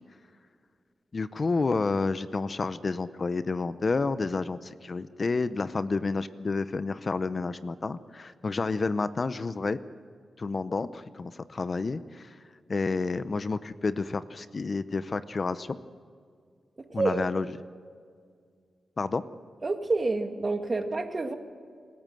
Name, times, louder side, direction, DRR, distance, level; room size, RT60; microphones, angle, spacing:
voice 1, 1.1-9.8 10.4-12.4 12.7-15.8 16.9-17.5 19.0-19.2, left 3 dB, 45° left, 14 dB, 0.6 m, -30 dB
voice 2, 16.8-17.2 19.6-21.3, right 3 dB, 40° right, 6 dB, 1.8 m, -28 dB
25.0 x 14.5 x 7.8 m, 2.1 s
cardioid pair, 80°, 0 cm